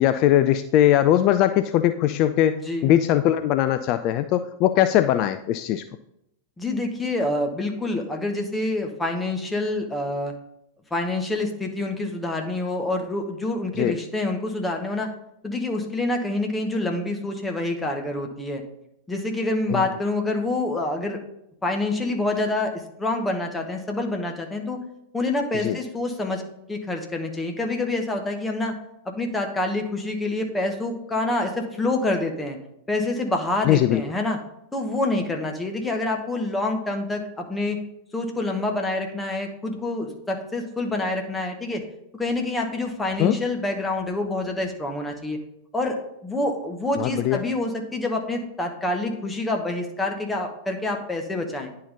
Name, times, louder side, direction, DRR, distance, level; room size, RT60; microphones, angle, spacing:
voice 1, 0.0-5.8 13.8-14.0 19.7-19.8 25.5-25.8 33.6-34.0 43.2-43.4 47.0-47.4, left 12 dB, 40° left, 11 dB, 0.3 m, -20 dB
voice 2, 2.5-2.9 6.6-10.3 10.9-15.1 15.4-18.6 19.1-21.2 21.6-24.8 25.1-26.4 26.7-28.7 29.0-32.6 32.9-34.4 34.7-37.8 38.1-41.8 42.1-45.4 45.7-51.7, left 2 dB, 10° left, 2 dB, 1.1 m, -27 dB
9.9 x 3.8 x 4.0 m, 0.80 s
figure-of-eight pair, 90°, 0 cm